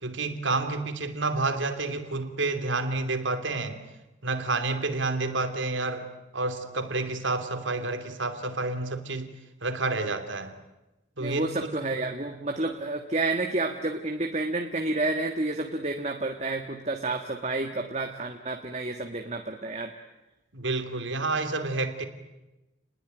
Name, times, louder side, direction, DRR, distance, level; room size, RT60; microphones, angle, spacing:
voice 1, 0.0-3.8 4.2-6.1 6.3-9.3 9.6-10.5 11.2-11.7 20.5-22.1, right 3 dB, 75° right, 7 dB, 3.0 m, -29 dB
voice 2, 11.2-19.9, right 2 dB, 35° right, 3 dB, 1.6 m, -30 dB
29.5 x 20.5 x 9.2 m, 1.0 s
head